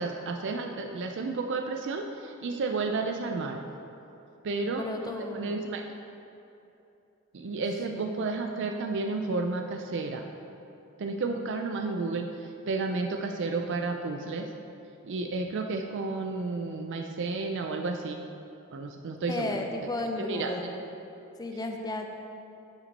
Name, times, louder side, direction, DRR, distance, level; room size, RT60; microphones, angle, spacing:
voice 1, 0.0-3.6 4.4-4.8 5.3-5.8 7.3-10.2 11.0-12.2 12.7-14.4 15.0-18.2 18.7-19.5 20.2-20.5, right 3 dB, 55° right, 4 dB, 0.4 m, -31 dB
voice 2, 4.8-5.6 7.9-8.3 19.3-20.8 21.4-22.1, left 2 dB, 20° left, 3 dB, 0.6 m, -34 dB
9.4 x 5.9 x 4.1 m, 2.8 s
head